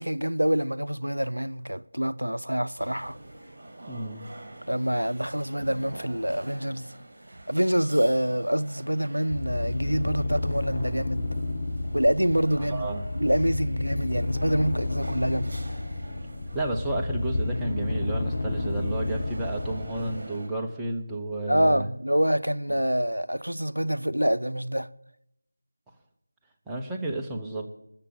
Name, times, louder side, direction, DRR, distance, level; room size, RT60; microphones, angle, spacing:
voice 1, 0.0-3.2 4.7-6.9 7.5-11.2 11.9-15.6 21.5-24.9, equal, 85° right, 0.5 m, -26 dB
sound 1, 2.8-20.5, right 1 dB, 40° right, 3.1 m, -46 dB
voice 2, 3.9-4.3 12.7-13.1 16.5-21.9 26.7-27.7, right 2 dB, 5° right, 0.8 m, -31 dB
sound 2, 9.3-20.2, left 2 dB, 30° left, 1.0 m, -31 dB
13.5 x 7.4 x 7.2 m
figure-of-eight pair, 165°, 0 cm